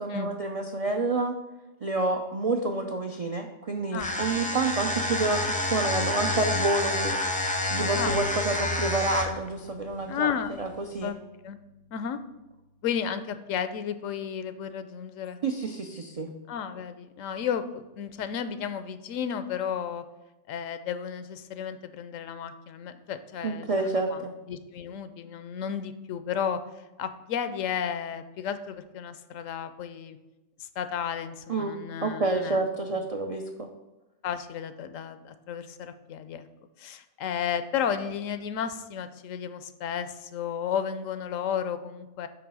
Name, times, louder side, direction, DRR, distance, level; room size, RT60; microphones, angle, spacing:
voice 1, 0.0-1.3 1.8-10.3 10.6-11.1 15.4-16.3 23.4-24.3 31.5-33.7, right 3 dB, 65° right, 3 dB, 0.3 m, -29 dB
sound 1, 3.9-9.5, left 1 dB, 10° left, 0.5 m, -28 dB
Bowed string instrument, 8.0-13.7, left 1 dB, 90° right, 1.3 m, -47 dB
voice 2, 10.1-10.5 11.0-11.2 11.4-11.6 11.9-12.2 12.8-15.4 16.5-20.0 20.5-26.6 27.0-30.2 30.6-32.6 34.2-36.4 36.8-42.3, left 8 dB, 80° left, 11 dB, 1.0 m, -33 dB
8.7 x 3.1 x 6.1 m, 1.0 s
omnidirectional pair, 1.3 m